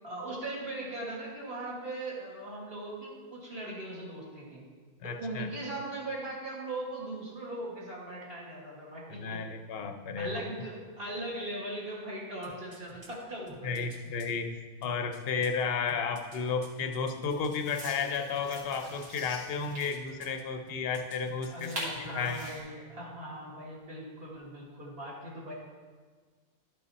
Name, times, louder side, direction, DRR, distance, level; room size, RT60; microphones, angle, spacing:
voice 1, 0.0-4.6 5.0-9.4 10.2-13.8 21.5-25.5, right 1 dB, 40° right, -4 dB, 2.1 m, -39 dB
voice 2, 5.0-5.5 9.1-10.4 13.6-22.5, left 5 dB, 55° left, 6 dB, 0.7 m, -33 dB
sound 1, 12.4-14.3 14.8-18.0 18.3-19.2 19.6-20.4 20.7-21.6 21.9-22.0, left 1 dB, 20° right, 0.9 m, -52 dB
sound 2, 15.7-15.8 17.3-19.9 21.6-22.6, right 1 dB, 70° right, 2.5 m, -43 dB
11.5 x 5.4 x 4.1 m, 1.5 s
omnidirectional pair, 1.5 m